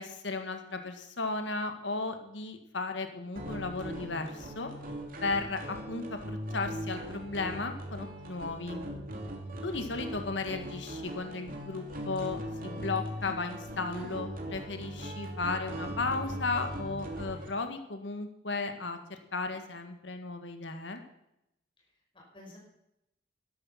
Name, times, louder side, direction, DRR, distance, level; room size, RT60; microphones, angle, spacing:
voice 1, 0.0-4.7 5.2-8.8 9.6-21.0, left 3 dB, 90° left, 6 dB, 1.7 m, -35 dB
sound 1, 3.4-17.5, right 1 dB, 50° right, 2.7 m, -40 dB
voice 2, 22.1-22.6, left 1 dB, 30° left, -1 dB, 5.3 m, -53 dB
12.5 x 12.5 x 5.8 m, 0.83 s
head